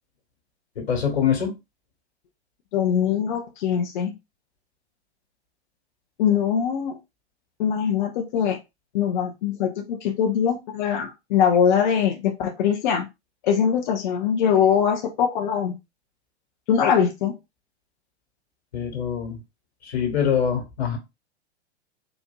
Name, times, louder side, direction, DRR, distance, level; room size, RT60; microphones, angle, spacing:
voice 1, 0.7-1.5 18.7-19.4 19.8-21.0, left 8 dB, 65° left, 1.5 m, -24 dB
voice 2, 2.7-4.1 6.2-7.0 7.6-8.6 8.9-13.1 13.4-15.7 16.7-17.3, left 8 dB, 45° left, 0.7 m, -22 dB
3.9 x 2.6 x 2.2 m
figure-of-eight pair, 100°, 34 cm